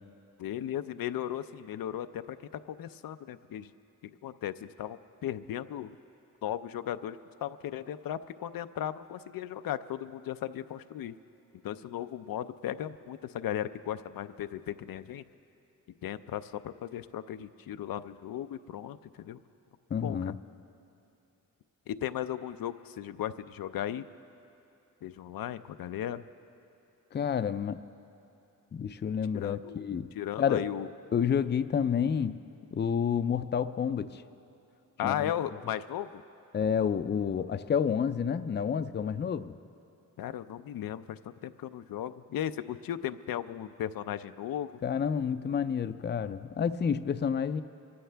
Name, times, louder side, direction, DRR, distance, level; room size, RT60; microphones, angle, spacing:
voice 1, 0.4-3.7 4.0-5.9 6.4-11.2 11.6-15.2 16.0-19.4 20.0-20.3 21.9-24.1 25.0-26.3 29.3-29.9 30.1-30.9 35.0-36.2 40.2-44.7, left 11 dB, 90° left, 11 dB, 0.5 m, -36 dB
voice 2, 19.9-20.4 27.1-27.8 28.7-30.1 30.4-30.7 31.1-32.4 32.7-34.2 35.0-35.3 36.5-39.5 44.8-47.6, left 7 dB, 30° left, 12 dB, 0.4 m, -29 dB
24.5 x 15.0 x 3.4 m, 2.8 s
wide cardioid pair, 110°, 34 cm